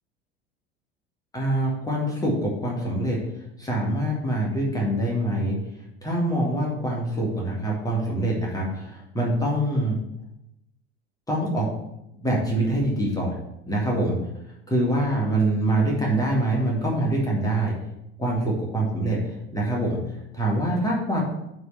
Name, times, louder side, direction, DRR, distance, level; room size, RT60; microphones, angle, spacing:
voice 1, 1.3-3.2 3.6-5.6 6.0-10.0 11.3-11.7 12.2-13.4 13.7-14.2 14.7-17.7 18.2-20.0 20.3-21.2, right 1 dB, 10° left, -3 dB, 2.1 m, -24 dB
8.0 x 3.6 x 6.7 m, 0.84 s
figure-of-eight pair, 75°, 32 cm